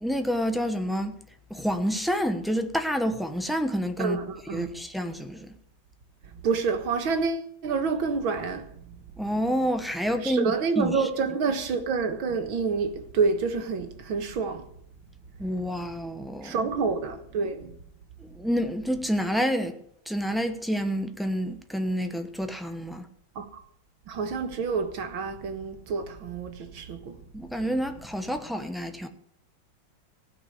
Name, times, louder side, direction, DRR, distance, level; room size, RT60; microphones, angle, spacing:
voice 1, 0.0-1.2 1.5-4.2 4.5-5.5 9.2-10.9 15.4-16.6 18.3-19.7 20.1-23.1 27.3-29.1, equal, ahead, 0.4 m, -28 dB
voice 2, 4.0-4.8 6.4-8.7 10.2-14.7 16.4-17.7 23.4-23.5 24.1-27.2, right 5 dB, 85° right, 2.3 m, -28 dB
16.0 x 6.0 x 9.8 m
omnidirectional pair, 2.1 m